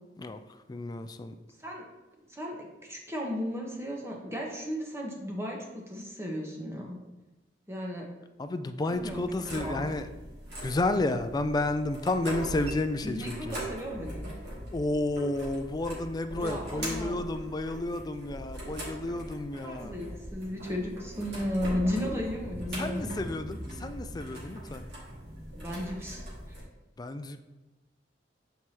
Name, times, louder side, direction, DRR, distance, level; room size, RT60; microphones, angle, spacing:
voice 1, 0.7-1.3 8.4-10.1 10.6-13.5 14.7-19.9 22.8-24.8 27.0-27.4, left 2 dB, 20° left, 9 dB, 0.3 m, -31 dB
voice 2, 2.3-7.0 7.7-8.1 8.9-9.2 9.5-9.8 12.4-12.5 13.0-14.3 16.4-17.3 19.6-23.1 25.6-26.2, left 1 dB, 15° right, -1 dB, 1.0 m, -35 dB
sound 1, 8.9-26.6, right 1 dB, 65° right, 2.1 m, -41 dB
7.8 x 4.6 x 2.9 m, 1.1 s
head